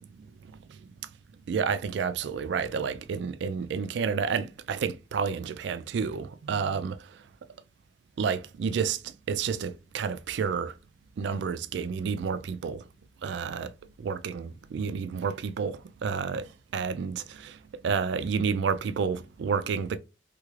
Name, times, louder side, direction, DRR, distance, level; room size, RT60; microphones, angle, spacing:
voice 1, 1.5-7.0 8.2-9.0 9.3-10.7 11.2-12.8 13.2-13.7 14.0-16.4 16.7-17.5 17.8-20.0, right 6 dB, 60° right, 0.3 m, -30 dB
3.3 x 2.3 x 3.1 m
head